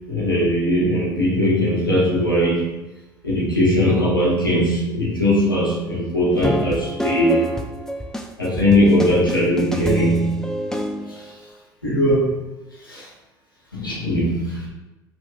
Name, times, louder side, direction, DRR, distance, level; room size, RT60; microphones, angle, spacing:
voice 1, 0.0-2.8 3.2-7.5 8.4-10.6 11.1-11.3 11.8-12.5 12.8-13.1 13.7-14.7, equal, 90° left, -6 dB, 0.7 m, -20 dB
sound 1, 6.3-11.3, equal, 5° left, 0.3 m, -27 dB
2.6 x 2.4 x 3.5 m, 1.1 s
figure-of-eight pair, 60°, 11 cm